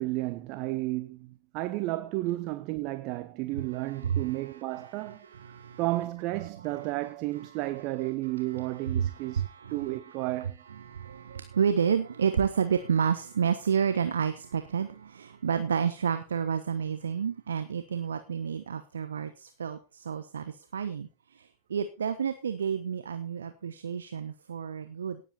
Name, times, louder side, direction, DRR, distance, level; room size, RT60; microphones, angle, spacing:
voice 1, 0.0-5.2 5.8-9.4 9.7-10.6, right 18 dB, 40° right, 0.9 m, -32 dB
voice 2, 3.7-5.8 6.6-6.9 7.3-7.8 8.2-25.2, right 7 dB, 70° right, 1.1 m, -31 dB
17.5 x 8.0 x 4.3 m
figure-of-eight pair, 90°, 0 cm